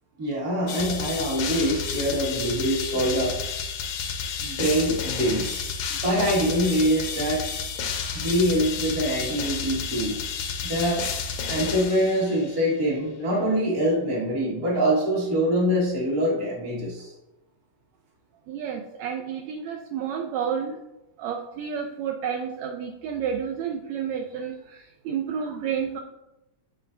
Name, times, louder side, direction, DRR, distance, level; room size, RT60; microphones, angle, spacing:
voice 1, 0.2-3.3 4.4-5.6 5.9-7.4 8.1-10.2 10.6-11.0 11.5-17.1, equal, 35° right, -5 dB, 1.8 m, -24 dB
sound 1, 0.7-12.6, left 6 dB, 80° left, 1.3 m, -31 dB
voice 2, 18.5-20.8 21.2-26.0, right 7 dB, 80° right, 3 dB, 1.6 m, -30 dB
7.5 x 5.6 x 2.5 m, 0.93 s
omnidirectional pair, 3.5 m